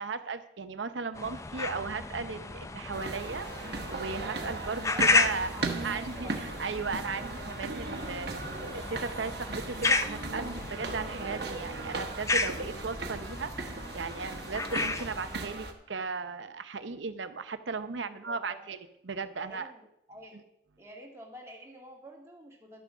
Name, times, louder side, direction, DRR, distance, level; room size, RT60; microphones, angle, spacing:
voice 1, 0.0-3.5 3.9-5.6 5.8-13.5 13.9-19.7, right 4 dB, 85° right, 10 dB, 0.8 m, -36 dB
sound 1, 1.2-15.5, left 3 dB, 15° left, 0.4 m, -33 dB
sound 2, 2.9-15.7, right 3 dB, 60° right, 1.2 m, -38 dB
voice 2, 4.9-6.3 18.0-18.6 19.3-20.4 20.8-22.8, right 1 dB, 15° right, -2 dB, 2.1 m, -48 dB
11.5 x 6.8 x 6.3 m, 0.78 s
head